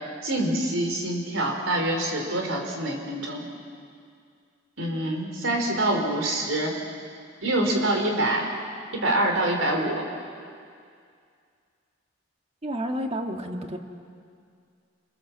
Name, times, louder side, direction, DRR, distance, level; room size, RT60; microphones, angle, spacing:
voice 1, 0.2-3.4 4.8-6.7 7.4-8.5 8.9-10.0, right 1 dB, 80° right, 2 dB, 4.3 m, -25 dB
voice 2, 12.6-13.8, equal, 30° right, 3 dB, 1.8 m, -30 dB
28.0 x 20.5 x 7.5 m, 2.3 s
head